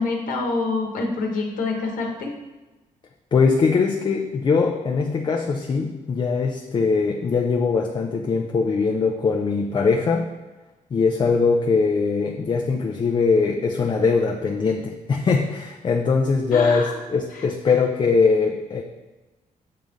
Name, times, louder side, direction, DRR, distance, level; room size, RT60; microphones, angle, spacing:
voice 1, 0.0-2.3 16.5-16.9 17.3-17.4, left 3 dB, 75° left, 0 dB, 1.1 m, -26 dB
voice 2, 3.3-10.3 10.9-18.8, left 4 dB, 35° left, 2 dB, 0.4 m, -21 dB
7.5 x 3.6 x 3.9 m, 1.2 s
cardioid pair, 135°, 14 cm